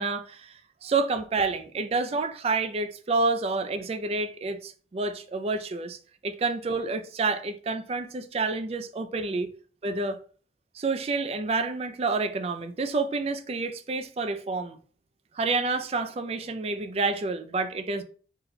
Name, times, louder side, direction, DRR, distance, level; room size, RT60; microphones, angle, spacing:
voice 1, 0.0-6.0 6.2-9.5 9.8-10.2 10.7-14.8 15.3-18.0, right 3 dB, 35° right, 0.3 m, -29 dB
4.0 x 2.2 x 3.9 m
head